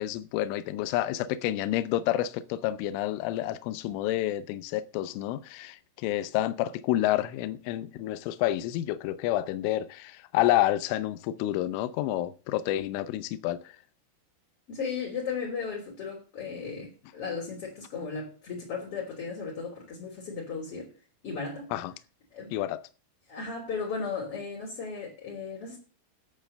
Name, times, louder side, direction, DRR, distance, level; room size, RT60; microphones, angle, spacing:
voice 1, 0.0-13.8 21.7-21.9 22.5-22.8, left 14 dB, 80° left, 3.2 m, -29 dB
voice 2, 14.7-20.9 21.2-21.7 22.3-22.5 23.3-25.8, left 5 dB, 30° left, 3.7 m, -35 dB
11.5 x 8.6 x 6.7 m
omnidirectional pair, 6.0 m